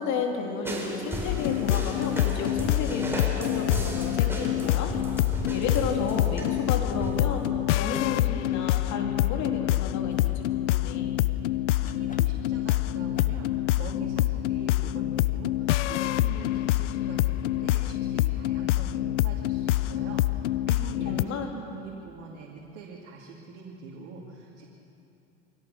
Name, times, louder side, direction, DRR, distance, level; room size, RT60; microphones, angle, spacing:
voice 1, 0.0-4.9 5.5-7.4 7.7-11.1 21.1-21.5, left 5 dB, 50° left, 2 dB, 3.2 m, -32 dB
sound 1, 0.6-7.5, right 1 dB, 5° right, 4.5 m, -35 dB
sound 2, 1.3-21.2, left 14 dB, 80° left, 0.5 m, -26 dB
sound 3, 2.1-2.5 4.1-4.5 4.8-5.1 7.9-8.1 10.1-10.4 11.8-12.5 13.1-13.5, left 4 dB, 20° left, 2.0 m, -50 dB
voice 2, 11.4-24.6, right 4 dB, 60° right, -2 dB, 2.7 m, -44 dB
24.0 x 17.0 x 6.7 m, 2.8 s
hypercardioid pair, 75°, 35 cm